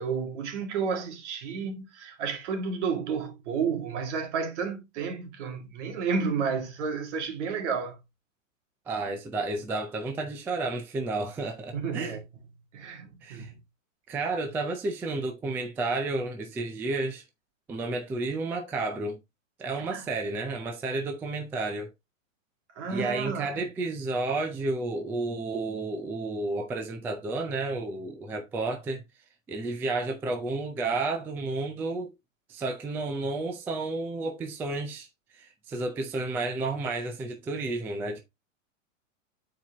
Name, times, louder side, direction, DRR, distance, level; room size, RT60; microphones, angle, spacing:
voice 1, 0.0-8.0 11.7-12.2 12.7-13.6 19.8-20.1 22.8-23.7, right 5 dB, 60° right, 2.1 m, -31 dB
voice 2, 8.9-12.1 13.2-13.5 14.1-17.2 17.7-19.2 19.6-21.9 22.9-29.0 29.5-32.1 32.5-35.1 35.3-38.2, right 3 dB, 5° right, 0.4 m, -31 dB
9.5 x 4.5 x 2.9 m
supercardioid pair, 150°, 39 cm